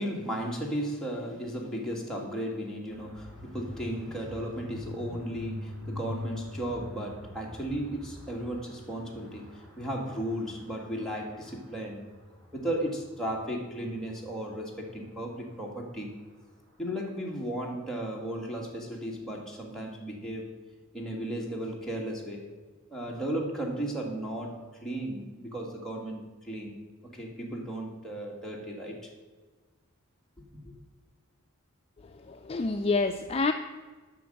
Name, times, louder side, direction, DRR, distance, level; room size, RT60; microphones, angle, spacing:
voice 1, 0.0-12.1 12.5-16.1 16.8-20.5 20.9-22.4 22.9-29.1 30.4-30.7, right 1 dB, ahead, -3 dB, 1.8 m, -35 dB
sound 1, 2.9-16.8, left 1 dB, 85° right, 3.2 m, -45 dB
voice 2, 32.3-33.5, left 3 dB, 30° left, 6 dB, 0.4 m, -27 dB
9.3 x 6.1 x 7.7 m, 1.3 s
head